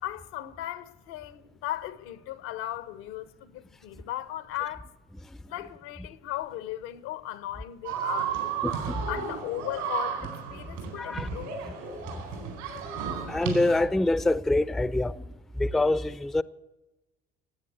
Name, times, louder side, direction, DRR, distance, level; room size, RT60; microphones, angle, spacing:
voice 1, 0.0-4.9 5.5-8.4 9.1-11.5, left 13 dB, 80° left, 1.0 m, -36 dB
sound 1, 7.8-13.8, right 8 dB, 85° right, 4.4 m, -33 dB
voice 2, 8.6-9.0 11.0-11.3 12.1-12.2 13.3-15.2 15.6-16.4, left 2 dB, ahead, 0.4 m, -25 dB
18.0 x 8.7 x 8.0 m
hypercardioid pair, 70°, 32 cm